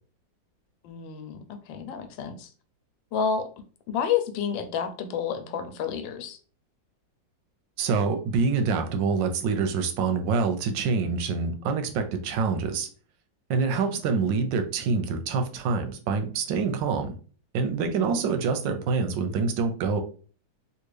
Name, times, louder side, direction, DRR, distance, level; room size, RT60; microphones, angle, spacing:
voice 1, 0.8-2.5 3.1-3.5 3.9-6.4 13.7-14.0 17.8-18.2, left 7 dB, 85° left, 8 dB, 1.3 m, -30 dB
voice 2, 7.8-12.9 13.5-17.2 17.5-20.0, right 5 dB, 85° right, 7 dB, 1.3 m, -26 dB
3.5 x 2.5 x 3.2 m, 0.40 s
omnidirectional pair, 2.0 m